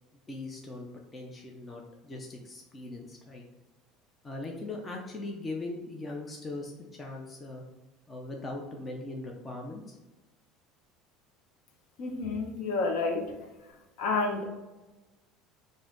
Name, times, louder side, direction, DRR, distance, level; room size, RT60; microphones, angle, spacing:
voice 1, 0.1-3.4 4.2-7.6 8.1-10.0, left 2 dB, 15° left, 0 dB, 0.4 m, -40 dB
voice 2, 12.0-13.3 14.0-14.4, left 3 dB, 55° left, 3 dB, 0.8 m, -29 dB
5.4 x 2.6 x 3.8 m, 1.1 s
cardioid pair, 175°, 0 cm